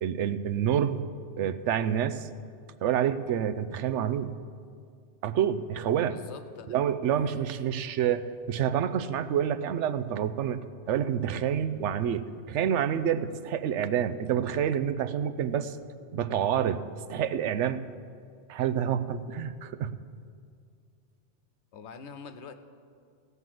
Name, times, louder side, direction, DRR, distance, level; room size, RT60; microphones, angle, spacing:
voice 1, 0.0-1.0 1.4-2.3 2.8-4.4 5.2-6.2 6.7-10.6 10.9-15.8 16.1-16.8 17.1-17.8 18.5-19.9, right 9 dB, 80° right, 11 dB, 0.9 m, -28 dB
voice 2, 6.0-6.8 21.7-22.5, left 5 dB, 75° left, 9 dB, 1.0 m, -45 dB
17.0 x 5.6 x 7.7 m, 2.2 s
omnidirectional pair, 1.2 m